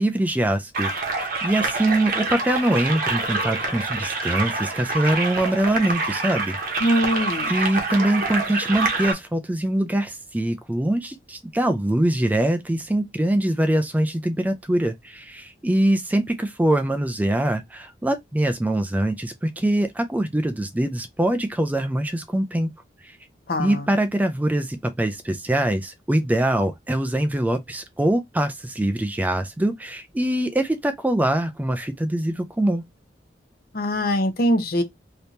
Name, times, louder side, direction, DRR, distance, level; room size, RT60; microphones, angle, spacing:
voice 1, 0.0-6.9 7.5-22.7 23.6-32.8, right 1 dB, 10° right, 0.3 m, -23 dB
sound 1, 0.7-9.1, right 3 dB, 55° right, 0.9 m, -26 dB
voice 2, 6.8-7.5 23.5-23.9 33.7-34.8, equal, 55° left, 0.8 m, -22 dB
3.4 x 2.9 x 2.6 m
head